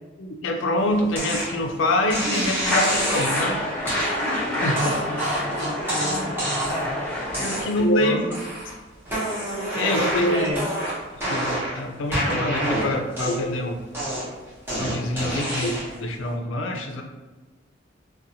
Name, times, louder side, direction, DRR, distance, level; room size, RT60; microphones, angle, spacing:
voice 1, 0.2-3.6 4.6-4.8 7.4-8.2 9.7-10.4 11.3-13.8 14.8-17.0, left 1 dB, 80° left, 3 dB, 0.4 m, -25 dB
sound 1, 1.2-1.5 2.1-3.5 3.9-4.2 4.8-6.9 7.3-7.9 8.3-8.7 9.1-11.8 12.1-13.6 13.9-16.0, right 1 dB, 10° right, 1.0 m, -27 dB
sound 2, 2.2-2.5 4.2-4.6 6.0-6.3 8.0-8.3 10.2-10.5 12.6-12.9, left 1 dB, 60° right, 1.2 m, -34 dB
sound 3, 2.6-7.6, equal, 5° left, 0.6 m, -28 dB
voice 2, 4.7-7.1 8.0-8.2 10.3-10.7, left 1 dB, 80° right, -5 dB, 0.9 m, -32 dB
2.7 x 2.2 x 2.6 m, 1.2 s
head